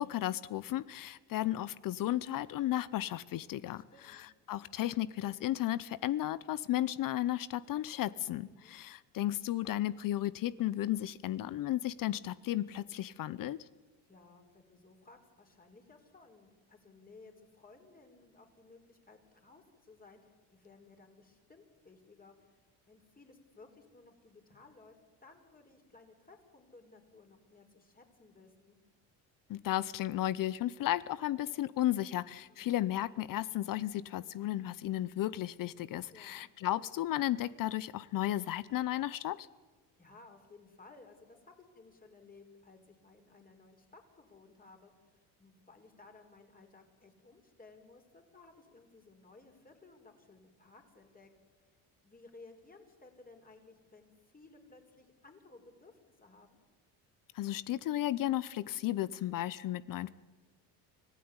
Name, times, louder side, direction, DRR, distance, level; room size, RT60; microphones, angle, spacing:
voice 1, 0.0-4.2 4.5-13.6 29.5-39.5 57.3-60.1, left 14 dB, 50° left, 18 dB, 0.8 m, -34 dB
voice 2, 3.8-4.2 8.5-8.8 14.1-25.0 25.2-28.8 32.5-32.8 36.1-36.4 40.0-51.3 52.0-56.6, left 3 dB, 20° left, 4 dB, 4.7 m, -58 dB
24.5 x 16.0 x 9.7 m, 1.3 s
supercardioid pair, 100°, 41 cm